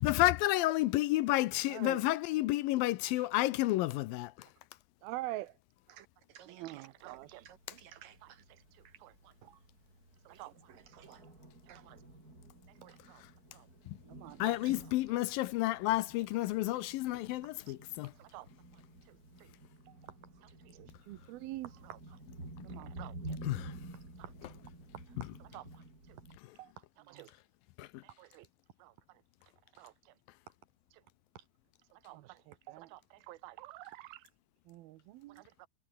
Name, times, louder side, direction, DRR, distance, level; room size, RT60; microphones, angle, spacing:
voice 1, 0.0-4.3 14.4-18.1 23.4-23.7 27.8-27.9, left 17 dB, 80° left, 2.4 m, -30 dB
voice 2, 1.7-2.1 5.0-5.5 6.5-7.5 8.2-9.3 10.3-10.5 11.8-12.0 12.8-13.2 13.5-13.7 14.1-14.5 15.1-15.2 15.9-16.0 16.7-16.9 18.2-18.5 19.1-19.2 19.4-19.5 20.4-22.0 22.6-23.4 24.2-24.3 25.5-25.6 26.0-26.2 26.6-26.7 27.1-27.3 28.2-28.5 28.8-28.9 29.7-30.1 30.9-31.0 31.9-34.3 34.7-35.7, right 17 dB, 90° right, 2.8 m, -47 dB
voice 3, 6.4-7.2 7.5-8.4 8.9-9.0 9.4-9.6 10.3-11.2 11.7-11.9 14.4-14.7 17.7-17.8 22.1-22.2 24.2-24.3 31.4-31.5, right 10 dB, 70° right, 3.5 m, -54 dB
Thunder, 7.0-26.4, right 2 dB, 25° right, 8.1 m, -51 dB
omnidirectional pair, 4.2 m